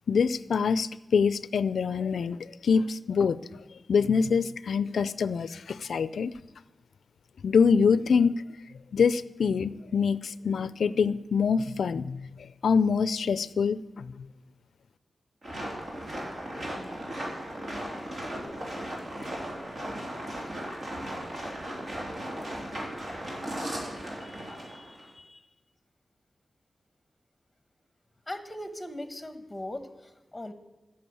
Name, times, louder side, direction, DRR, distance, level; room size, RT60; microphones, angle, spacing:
voice 1, 0.1-3.4 3.9-6.3 7.4-8.3 8.9-12.3 12.6-14.3, left 6 dB, 90° left, 16 dB, 0.4 m, -25 dB
sound 1, 15.4-25.1, right 1 dB, 55° right, 3.4 m, -36 dB
voice 2, 24.2-25.4 28.3-30.5, left 1 dB, 15° left, 9 dB, 1.1 m, -40 dB
12.5 x 6.7 x 8.5 m, 1.0 s
wide cardioid pair, 100°, 0 cm